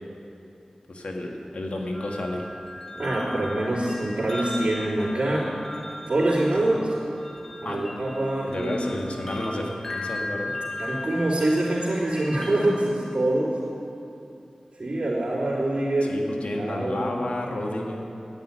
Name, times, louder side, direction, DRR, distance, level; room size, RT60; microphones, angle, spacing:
voice 1, 0.9-2.4 6.5-6.6 7.6-7.8 8.5-10.5 16.1-18.0, left 1 dB, 75° left, 1 dB, 1.7 m, -31 dB
sound 1, 1.9-12.7, left 2 dB, 25° left, 2.0 m, -37 dB
voice 2, 2.9-5.5 6.1-6.9 7.6-8.8 9.1-9.3 10.8-13.6 14.8-17.1, right 1 dB, 55° right, -10 dB, 3.4 m, -25 dB
10.5 x 8.9 x 10.0 m, 2.8 s
cardioid pair, 45°, 2 cm